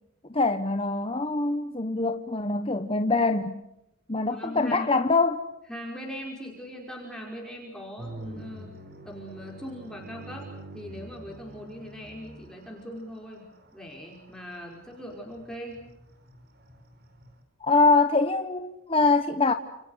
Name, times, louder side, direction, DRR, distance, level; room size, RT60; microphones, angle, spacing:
voice 1, 0.3-3.6 4.1-5.5 17.6-19.5, left 3 dB, 25° left, 1.2 m, -24 dB
voice 2, 4.2-4.9 5.7-8.7 9.1-15.8, equal, 5° left, 5.2 m, -40 dB
sound 1, 8.0-17.4, right 1 dB, 45° right, 5.1 m, -47 dB
30.0 x 29.0 x 6.5 m
head